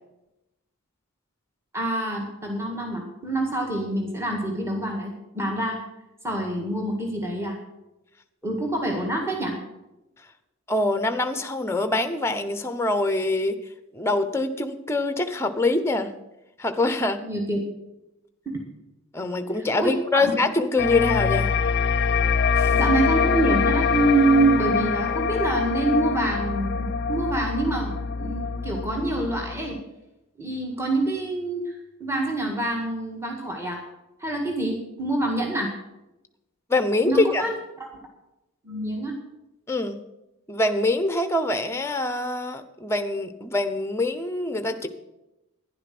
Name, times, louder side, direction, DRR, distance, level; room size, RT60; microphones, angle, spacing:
voice 1, 1.7-5.8 6.2-7.6 8.4-9.6 17.2-17.6 18.5-18.6 19.8-20.3 22.7-29.8 30.4-33.8 34.2-35.7 37.1-37.9 38.6-39.2, right 2 dB, 10° right, 1 dB, 1.8 m, -26 dB
voice 2, 10.7-13.6 13.9-16.1 16.6-17.2 19.1-21.5 22.5-22.7 36.7-37.4 39.7-40.0 40.5-44.9, left 2 dB, 10° left, 9 dB, 0.8 m, -24 dB
sound 1, 20.8-29.8, left 5 dB, 45° left, 0.4 m, -24 dB
11.5 x 10.5 x 6.0 m, 0.95 s
head